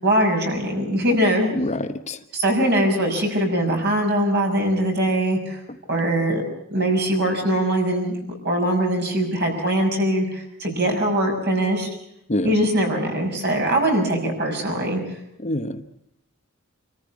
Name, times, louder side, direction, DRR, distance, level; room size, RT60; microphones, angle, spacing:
voice 1, 0.0-1.5 2.3-5.6 5.9-6.4 6.7-8.2 8.4-11.9 12.4-15.0, right 1 dB, 50° right, 2 dB, 6.2 m, -21 dB
voice 2, 1.5-2.2 12.3-12.5 15.4-16.0, left 1 dB, 35° left, 9 dB, 1.0 m, -26 dB
26.0 x 14.0 x 8.5 m, 0.78 s
head